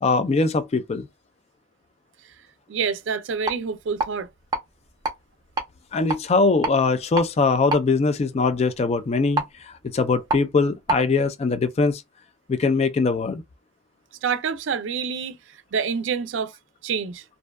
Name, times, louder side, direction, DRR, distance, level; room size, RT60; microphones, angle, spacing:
voice 1, 0.0-1.1 5.9-12.0 12.5-13.4, left 4 dB, 35° left, 0.3 m, -22 dB
voice 2, 2.7-4.3 14.2-15.4 15.7-16.5 16.8-17.2, right 6 dB, 75° right, 0.4 m, -27 dB
sound 1, 3.3-11.1, right 3 dB, 20° right, 0.6 m, -32 dB
2.6 x 2.2 x 2.2 m
head